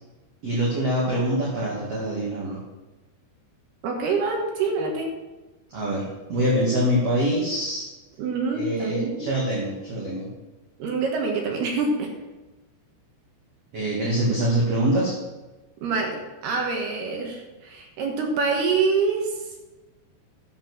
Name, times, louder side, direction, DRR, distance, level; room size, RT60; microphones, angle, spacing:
voice 1, 0.4-2.6 5.7-7.9 8.6-10.3 13.7-15.1, right 1 dB, 45° right, -5 dB, 2.4 m, -24 dB
voice 2, 3.8-5.1 8.2-9.3 10.8-12.1 15.8-19.4, right 4 dB, 65° right, 1 dB, 3.3 m, -26 dB
11.5 x 7.3 x 6.1 m, 1.1 s
omnidirectional pair, 5.4 m